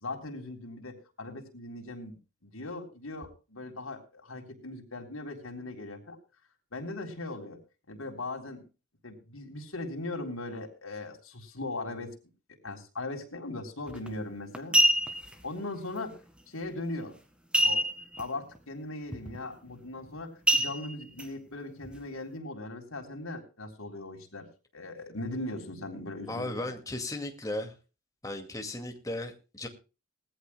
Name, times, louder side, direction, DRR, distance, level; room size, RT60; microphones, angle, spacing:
voice 1, 0.0-6.2 6.7-7.6 7.9-8.7 9.0-12.1 12.6-14.8 15.4-16.2 16.5-17.2 17.6-17.9 18.2-24.5 24.7-26.6, left 2 dB, 80° left, 3.7 m, -39 dB
Coin flip, 13.9-14.1 14.5-15.3 17.5-18.2 18.5-18.6 19.1-19.4 20.5-21.3 21.8-21.9, right 1 dB, 5° right, 1.9 m, -25 dB
voice 2, 26.3-27.7 28.2-29.7, left 1 dB, 15° left, 2.2 m, -36 dB
20.5 x 14.5 x 2.3 m
head